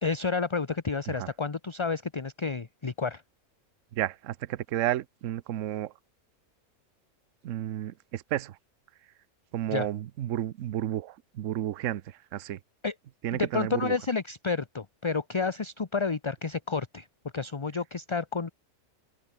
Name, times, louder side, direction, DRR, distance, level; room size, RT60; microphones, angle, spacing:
voice 1, 0.0-3.2 9.7-9.9 12.8-12.9 13.3-17.1 17.3-18.5, left 4 dB, 25° left, 0.7 m, -30 dB
voice 2, 3.9-5.9 7.4-8.6 9.5-12.6 13.2-13.9, right 12 dB, 65° right, 1.0 m, -32 dB
open air
omnidirectional pair, 1.5 m